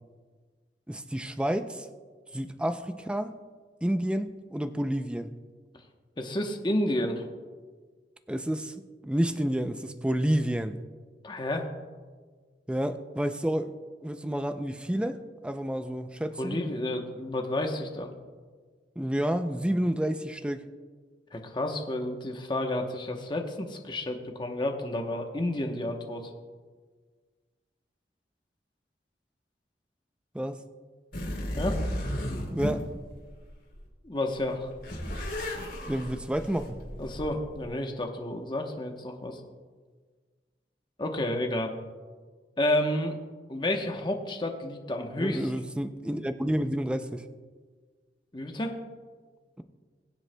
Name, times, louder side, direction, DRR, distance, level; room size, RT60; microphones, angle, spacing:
voice 1, 0.9-1.9 2.3-3.3 3.8-5.3 8.3-8.7 9.0-10.8 12.7-13.7 14.0-16.6 19.0-20.6 30.3-30.6 32.5-32.8 35.9-36.8 45.2-47.3, equal, 5° right, 8 dB, 0.4 m, -29 dB
voice 2, 6.2-7.3 11.2-11.7 16.4-18.1 21.3-26.3 31.6-31.8 34.0-34.7 37.0-39.4 41.0-41.7 42.6-43.2 43.5-45.5 48.3-48.7, left 1 dB, 25° left, 3 dB, 0.9 m, -30 dB
sound 1, 31.1-33.9 34.3-37.7, equal, 65° left, 3.2 m, -34 dB
22.5 x 7.7 x 2.2 m, 1.5 s
head